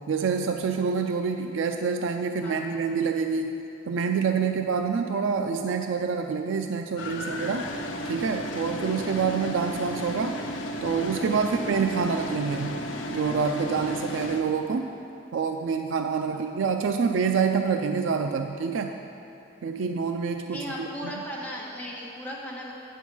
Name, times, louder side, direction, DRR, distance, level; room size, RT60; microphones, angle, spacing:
voice 1, 0.1-3.6 3.9-7.7 8.0-10.4 10.8-12.8 13.1-14.9 15.3-18.9 19.6-21.1, right 5 dB, 75° right, 5 dB, 0.4 m, -27 dB
sound 1, 7.0-14.4, equal, 70° left, 0.7 m, -34 dB
voice 2, 20.4-22.7, equal, 10° left, -7 dB, 1.5 m, -37 dB
9.0 x 5.5 x 6.2 m, 2.9 s
head